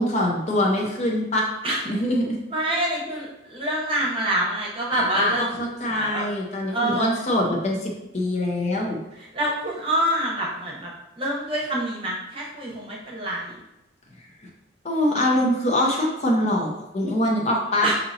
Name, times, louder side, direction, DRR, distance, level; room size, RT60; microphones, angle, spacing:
voice 1, 0.0-1.5 1.9-2.4 4.9-9.0 14.8-17.9, left 1 dB, 35° left, -1 dB, 0.6 m, -23 dB
voice 2, 2.5-6.3 6.7-7.1 9.1-13.6 17.8-17.9, right 1 dB, 30° right, -3 dB, 0.9 m, -26 dB
5.1 x 2.8 x 2.7 m, 0.93 s
head